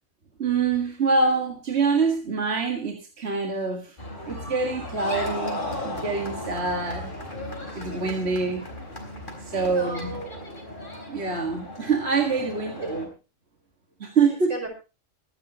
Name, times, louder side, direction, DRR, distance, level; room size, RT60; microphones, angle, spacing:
voice 1, 0.4-4.0 4.3-7.1 7.8-8.7 9.4-10.2 11.1-13.0 14.0-14.5, right 4 dB, 55° right, 3 dB, 2.1 m, -25 dB
sound 1, 4.0-13.1, left 1 dB, 40° left, 3.9 m, -36 dB
voice 2, 9.5-10.6 12.5-12.9 14.3-14.7, right 2 dB, 80° right, 3 dB, 5.9 m, -37 dB
24.5 x 10.5 x 2.9 m, 0.32 s
omnidirectional pair, 1.3 m